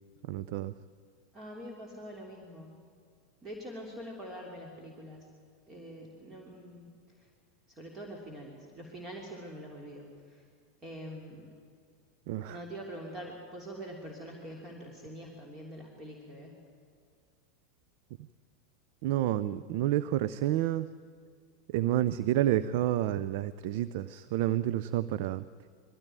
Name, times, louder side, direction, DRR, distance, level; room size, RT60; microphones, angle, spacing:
voice 1, 0.2-0.7 12.3-12.6 19.0-20.9 21.7-25.4, right 13 dB, 55° right, 15 dB, 0.5 m, -29 dB
voice 2, 1.3-2.7 3.4-5.3 5.7-6.9 7.2-7.3 7.7-10.4 10.8-11.5 12.5-16.5, equal, 25° right, 0 dB, 3.2 m, -44 dB
21.0 x 15.0 x 9.0 m, 2.1 s
hypercardioid pair, 90°, 0 cm